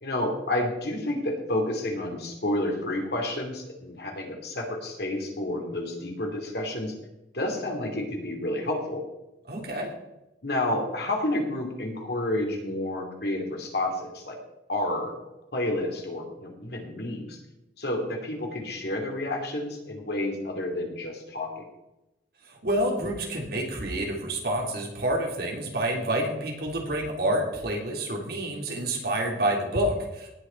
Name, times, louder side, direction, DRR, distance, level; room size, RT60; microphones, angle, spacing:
voice 1, 0.0-6.9 7.3-9.0 10.4-14.4 14.7-17.4 17.8-21.6, left 1 dB, 60° left, 2 dB, 2.8 m, -30 dB
voice 2, 9.5-9.9 22.5-30.3, right 1 dB, 55° right, 0 dB, 3.0 m, -28 dB
18.0 x 6.7 x 4.6 m, 0.94 s
head